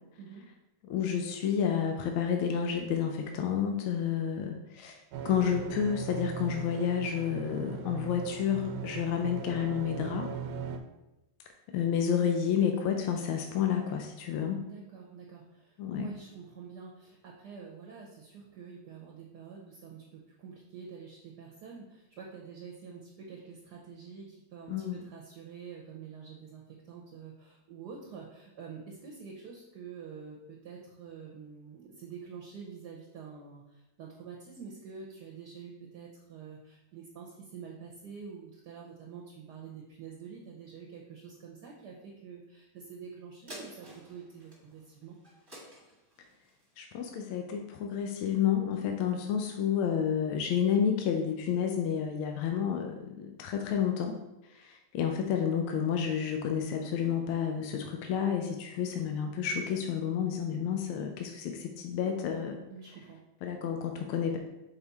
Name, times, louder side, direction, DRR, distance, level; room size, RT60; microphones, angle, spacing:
voice 1, 0.8-10.3 11.7-14.6 15.8-16.1 24.7-25.0 46.8-54.2 54.5-62.6 63.4-64.4, left 8 dB, 80° left, 4 dB, 1.4 m, -30 dB
sound 1, 5.1-10.8, right 7 dB, 85° right, 1.5 m, -39 dB
voice 2, 14.6-45.2 62.7-63.2, right 6 dB, 65° right, -1 dB, 1.2 m, -47 dB
sound 2, 43.5-48.2 48.7-48.8, right 1 dB, 15° right, 1.0 m, -51 dB
5.8 x 4.0 x 4.0 m, 0.95 s
omnidirectional pair, 2.3 m